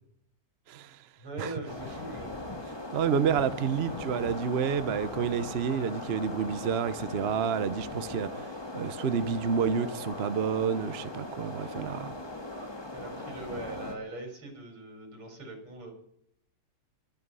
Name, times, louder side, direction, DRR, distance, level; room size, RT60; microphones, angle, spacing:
voice 1, 0.7-1.0 1.4-1.5 2.9-8.4 8.7-12.2, right 7 dB, 60° right, 0.6 m, -29 dB
voice 2, 1.2-2.4 12.9-15.9, right 2 dB, 80° right, 5.5 m, -41 dB
sound 1, 1.7-14.0, left 2 dB, 15° left, 1.6 m, -39 dB
24.0 x 9.4 x 5.6 m
omnidirectional pair, 2.4 m